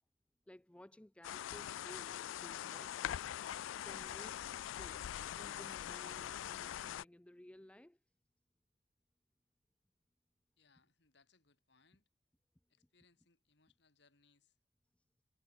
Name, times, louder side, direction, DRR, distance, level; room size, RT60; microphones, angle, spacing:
voice 1, 0.5-3.2 3.8-5.1 5.3-8.0, left 1 dB, 5° left, 0.3 m, -57 dB
sound 1, 1.2-7.0, left 11 dB, 85° left, 0.3 m, -43 dB
voice 2, 10.6-12.0 12.7-14.6, left 4 dB, 60° left, 2.5 m, -73 dB
head